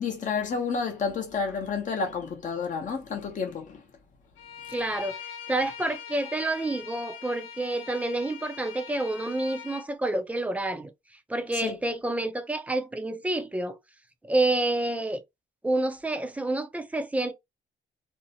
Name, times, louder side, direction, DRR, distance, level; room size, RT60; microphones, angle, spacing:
voice 1, 0.0-3.8 11.6-11.7, left 5 dB, 40° left, 0.8 m, -30 dB
Bowed string instrument, 4.4-9.9, left 8 dB, 80° left, 0.6 m, -42 dB
voice 2, 4.7-10.9 11.3-13.8 14.3-15.2 15.6-17.3, right 2 dB, 5° right, 0.5 m, -28 dB
2.6 x 2.1 x 2.7 m
cardioid pair, 90°, 20 cm